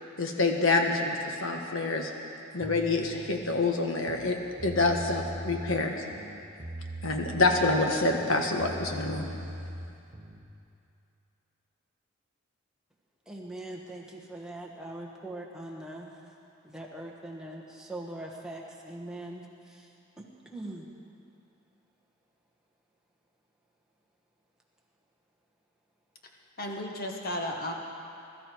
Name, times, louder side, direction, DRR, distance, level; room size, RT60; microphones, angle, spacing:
voice 1, 0.2-2.1 2.5-5.9 7.0-9.3, left 3 dB, 65° left, 2 dB, 1.5 m, -27 dB
sound 1, 2.6-3.7 4.0-5.8 6.1-7.8 8.1-10.5, right 1 dB, 30° right, 1.2 m, -41 dB
voice 2, 13.3-16.1 16.6-19.9 20.5-20.9, right 1 dB, 5° right, -2 dB, 1.4 m, -41 dB
voice 3, 26.6-27.7, left 1 dB, 45° left, 1 dB, 1.6 m, -34 dB
21.5 x 13.0 x 4.7 m, 2.7 s
head